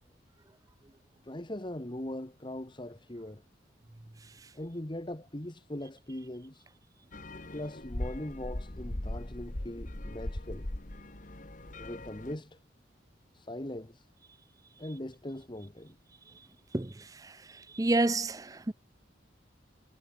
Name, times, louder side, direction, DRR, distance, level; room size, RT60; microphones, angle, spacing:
voice 1, 1.2-3.4 4.5-6.7 7.5-10.7 11.8-12.6 13.3-14.1 14.8-16.0, left 1 dB, 25° left, 1.5 m, -40 dB
sound 1, 7.1-12.4, left 1 dB, 45° left, 1.6 m, -39 dB
voice 2, 17.7-18.7, right 2 dB, 20° right, 0.5 m, -28 dB
head